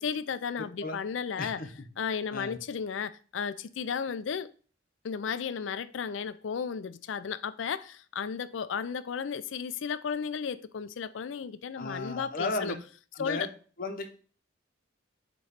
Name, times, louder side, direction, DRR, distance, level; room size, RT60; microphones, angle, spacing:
voice 1, 0.0-1.7 2.0-4.5 5.0-12.8 13.2-13.5, left 6 dB, 75° left, 0.4 m, -34 dB
voice 2, 1.4-1.7 2.3-2.6 11.8-12.8 13.2-13.5 13.8-14.2, left 2 dB, 50° left, 0.9 m, -34 dB
7.0 x 3.1 x 4.9 m
head